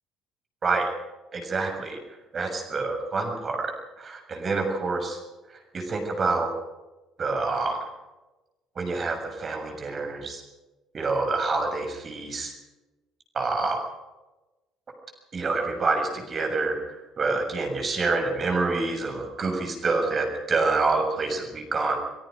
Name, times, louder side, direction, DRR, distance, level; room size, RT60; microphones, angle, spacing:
voice 1, 1.3-2.0 2.3-3.7 4.0-5.2 5.7-6.5 7.2-7.8 8.8-10.4 10.9-12.5 13.4-13.8 15.3-16.8 17.2-22.0, right 3 dB, 40° right, 4 dB, 6.9 m, -27 dB
24.5 x 22.5 x 5.3 m, 1.1 s
hypercardioid pair, 55°, 0 cm